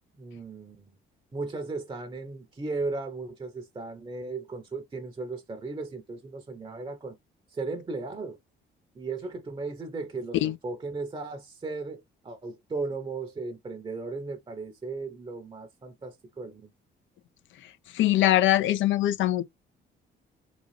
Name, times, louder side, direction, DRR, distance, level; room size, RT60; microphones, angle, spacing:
voice 1, 0.2-0.9 1.3-7.1 7.5-8.4 8.9-16.7, right 3 dB, 25° right, 0.7 m, -36 dB
voice 2, 17.9-19.4, left 14 dB, 75° left, 0.5 m, -22 dB
3.9 x 2.4 x 3.1 m
cardioid pair, 90°, 20 cm